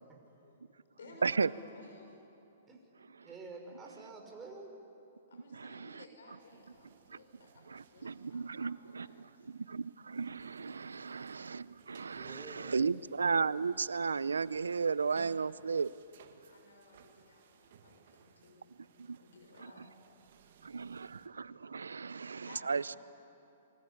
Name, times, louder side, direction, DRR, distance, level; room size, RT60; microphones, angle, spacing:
voice 1, 0.1-0.6 0.9-2.1 2.5-2.6 5.3-9.5 16.5-18.8 19.2-19.9 22.4-23.0, left 2 dB, 75° left, 2 dB, 6.4 m, -57 dB
voice 2, 3.2-4.7 12.1-12.9, right 3 dB, 15° right, 1 dB, 5.5 m, -49 dB
voice 3, 5.5-6.0 7.1-7.2 7.7-9.1 9.4-15.9 19.0-19.2 19.6-19.7 20.6-23.0, right 5 dB, 90° right, 19 dB, 0.7 m, -34 dB
sound 1, 6.4-21.3, right 8 dB, 60° right, 2.2 m, -62 dB
28.0 x 23.5 x 8.7 m, 2.8 s
hypercardioid pair, 130°, 0 cm